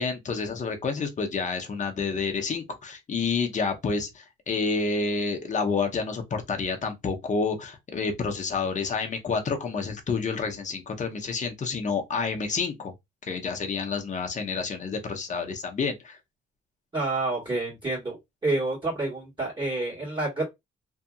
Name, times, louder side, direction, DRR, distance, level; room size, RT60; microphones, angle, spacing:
voice 1, 0.0-12.9 13.3-16.2, left 4 dB, 40° left, 0.8 m, -29 dB
voice 2, 16.9-20.4, right 2 dB, 25° right, 1.5 m, -28 dB
2.7 x 2.5 x 2.3 m
cardioid pair, 90°, 20 cm